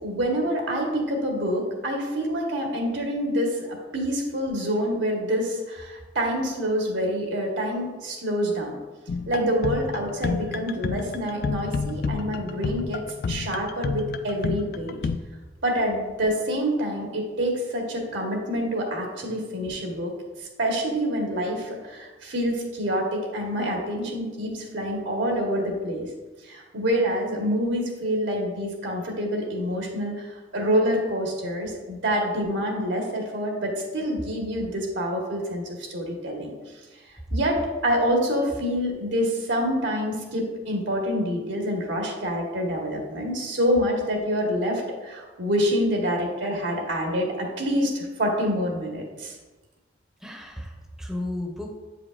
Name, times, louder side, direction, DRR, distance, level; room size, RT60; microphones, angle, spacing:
voice 1, 0.0-8.8 9.3-15.0 15.6-20.1 20.4-26.1 26.4-30.2 30.5-36.5 37.3-49.3, equal, 85° right, 0 dB, 1.3 m, -27 dB
sound 1, 9.1-15.2, left 4 dB, 55° left, 0.3 m, -30 dB
voice 2, 50.2-51.7, left 1 dB, 5° right, 1 dB, 0.6 m, -34 dB
7.8 x 5.0 x 2.4 m, 1.2 s
head